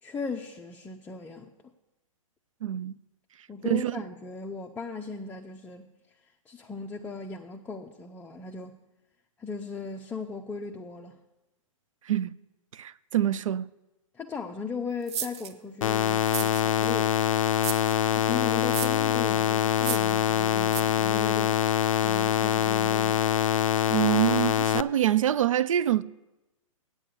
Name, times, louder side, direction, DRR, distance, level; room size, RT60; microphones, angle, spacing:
voice 1, 0.0-1.5 3.5-5.9 6.5-8.8 9.4-11.2 14.1-17.2 18.1-23.2, left 4 dB, 10° left, 0.5 m, -37 dB
voice 2, 2.6-3.0 3.7-4.0 12.0-12.4 12.7-13.7 23.9-26.0, right 12 dB, 65° right, 0.4 m, -25 dB
sound 1, 15.1-15.5 16.2-16.9 17.6-17.9 18.6-19.0 19.8-20.2 20.7-20.8, right 9 dB, 50° right, 0.8 m, -34 dB
sound 2, 15.8-24.8, left 9 dB, 70° left, 0.4 m, -24 dB
8.5 x 8.4 x 6.8 m
figure-of-eight pair, 120°, 18 cm